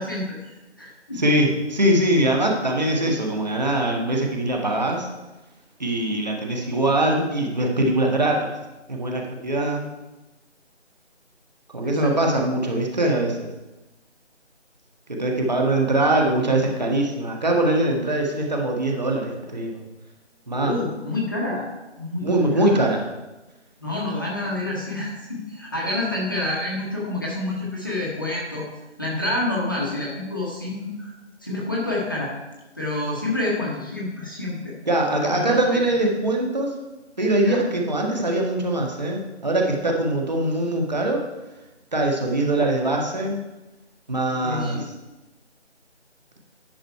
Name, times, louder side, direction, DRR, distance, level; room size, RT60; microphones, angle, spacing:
voice 1, 0.0-1.2 11.8-12.1 20.6-21.7 22.0-22.8 23.8-28.6 29.0-31.1 31.4-32.3 32.7-34.7 35.3-35.8 37.4-37.6 44.2-44.9, left 2 dB, 20° left, -5 dB, 1.1 m, -28 dB
voice 2, 1.2-5.1 5.8-8.5 8.9-9.8 11.7-13.5 15.1-19.8 20.5-20.7 22.2-23.1 34.9-36.7 37.2-41.2 41.9-43.4 44.1-44.8, right 1 dB, 35° right, 0 dB, 1.5 m, -22 dB
10.5 x 6.1 x 4.6 m, 1.1 s
figure-of-eight pair, 170°, 35 cm